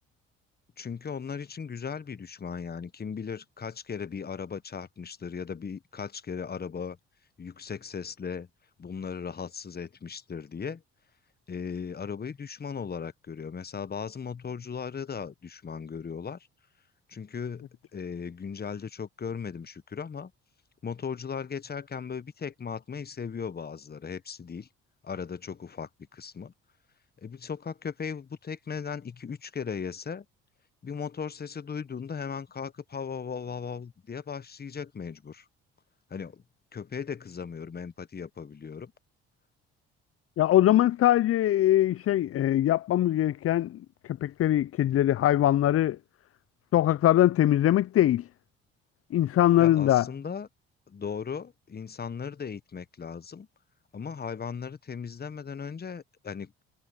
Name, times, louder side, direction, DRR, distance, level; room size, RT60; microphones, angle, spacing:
voice 1, 0.8-7.0 7.4-8.5 8.8-10.8 11.5-16.5 17.1-20.3 20.8-24.7 25.0-26.5 27.2-30.2 30.8-35.5 36.1-36.4 36.7-38.9 49.6-50.5 50.9-53.5 53.9-56.6, left 6 dB, 30° left, 1.3 m, -37 dB
voice 2, 40.4-43.8 44.0-46.0 46.7-48.3 49.1-50.1, left 13 dB, 50° left, 0.6 m, -22 dB
hypercardioid pair, 55°, 30 cm